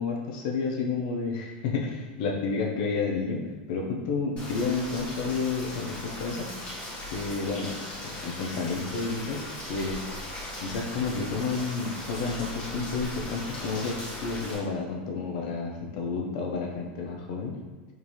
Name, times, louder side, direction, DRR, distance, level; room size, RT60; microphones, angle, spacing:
voice 1, 0.0-6.5 7.1-7.8 8.0-10.0 10.6-14.0 14.2-17.6, left 4 dB, 65° left, 0 dB, 0.7 m, -30 dB
Rain, 4.4-14.5, left 1 dB, 20° left, 1.2 m, -38 dB
3.7 x 2.7 x 3.1 m, 1.3 s
supercardioid pair, 155°, 5 cm